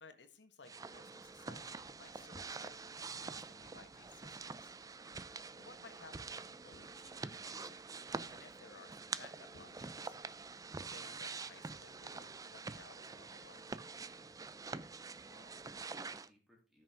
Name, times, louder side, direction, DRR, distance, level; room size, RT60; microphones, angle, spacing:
voice 1, 0.0-4.7 5.5-7.9 8.2-10.2 10.8-13.7, left 4 dB, 85° left, 8 dB, 1.5 m, -59 dB
sound 1, 0.6-16.3, right 4 dB, 20° right, 0.4 m, -46 dB
voice 2, 5.4-5.8 15.2-16.8, left 1 dB, ahead, -3 dB, 3.2 m, -68 dB
sound 2, 6.7-7.5 9.5-10.4, left 1 dB, 55° left, 1.0 m, -65 dB
13.5 x 6.2 x 3.7 m, 0.33 s
head